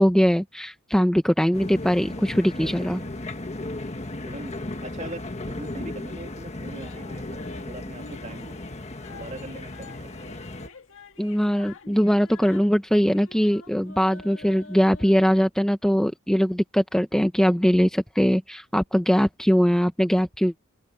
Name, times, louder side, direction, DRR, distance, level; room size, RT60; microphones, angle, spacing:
voice 1, 0.0-3.0 11.2-20.6, equal, 5° left, 0.7 m, -21 dB
sound 1, 1.5-10.7, left 2 dB, 30° left, 1.5 m, -35 dB
voice 2, 2.5-3.1 4.3-8.6 9.1-10.2, right 2 dB, 35° right, 2.3 m, -41 dB
sound 2, 6.8-15.3, left 3 dB, 60° left, 2.0 m, -47 dB
head